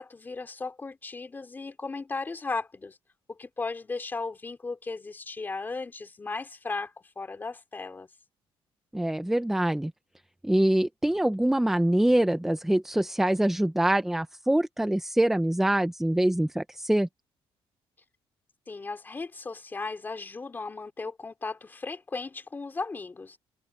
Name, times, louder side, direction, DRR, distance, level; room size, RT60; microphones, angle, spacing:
voice 1, 0.0-3.0 3.3-8.1 18.7-23.4, left 3 dB, 20° left, 3.5 m, -36 dB
voice 2, 8.9-9.9 10.4-17.1, right 1 dB, 5° right, 0.7 m, -24 dB
cardioid pair, 160°, 10 cm